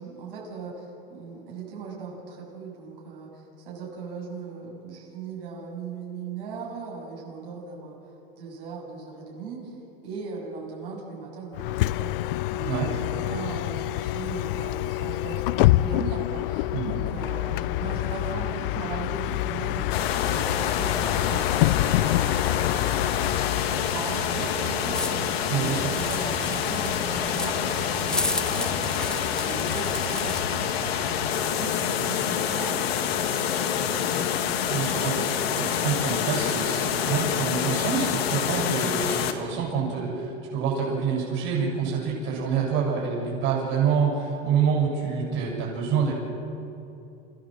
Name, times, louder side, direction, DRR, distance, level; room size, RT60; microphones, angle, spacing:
voice 1, 0.0-8.0 8.4-9.8 10.0-21.8 22.2-34.4, right 4 dB, 70° right, -3 dB, 7.6 m, -38 dB
Bus, 11.5-24.0, left 17 dB, 65° left, 0.5 m, -26 dB
sound 1, 19.9-39.3, left 8 dB, 90° left, 2.2 m, -27 dB
sound 2, 24.9-30.4, left 2 dB, 5° left, 0.4 m, -33 dB
voice 2, 25.5-25.9 34.7-46.1, right 6 dB, 40° right, -3 dB, 7.4 m, -27 dB
29.5 x 15.5 x 7.8 m, 2.9 s
supercardioid pair, 150°, 30 cm